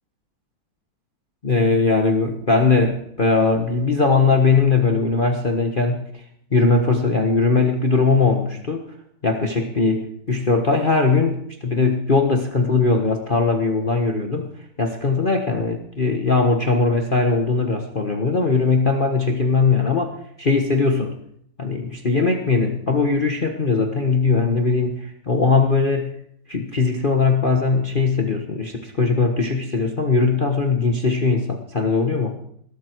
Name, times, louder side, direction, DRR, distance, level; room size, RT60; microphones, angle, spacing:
voice 1, 1.4-6.1 6.5-8.9 9.2-14.5 14.8-21.1 21.6-26.1 26.5-32.4, left 4 dB, 30° left, 4 dB, 1.3 m, -20 dB
21.0 x 13.0 x 4.7 m, 0.69 s
omnidirectional pair, 2.1 m